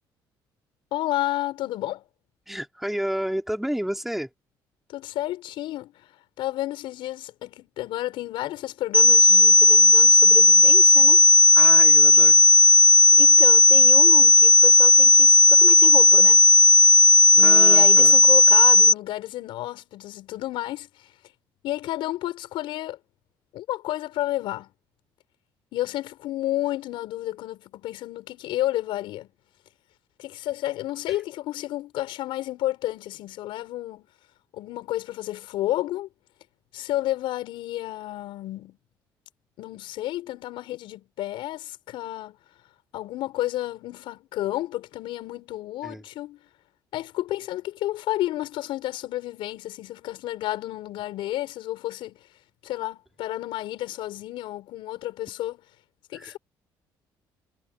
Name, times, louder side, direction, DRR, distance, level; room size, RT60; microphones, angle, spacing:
voice 1, 0.9-2.0 4.9-6.1 6.4-11.2 12.1-12.2 13.1-16.5 17.3-20.9 21.6-23.0 23.5-24.7 25.7-29.3 30.2-34.1 34.5-36.1 36.7-38.8 39.6-42.4 42.9-46.4 46.9-52.2 52.6-55.6 56.1-56.4, left 15 dB, 80° left, 7.3 m, -31 dB
voice 2, 2.5-4.3 11.6-12.8 17.4-18.2 31.1-31.2 45.8-46.0 56.1-56.4, equal, 5° right, 3.5 m, -31 dB
sound 1, 8.9-18.9, left 4 dB, 15° left, 0.4 m, -14 dB
cardioid pair, 95°, 8 cm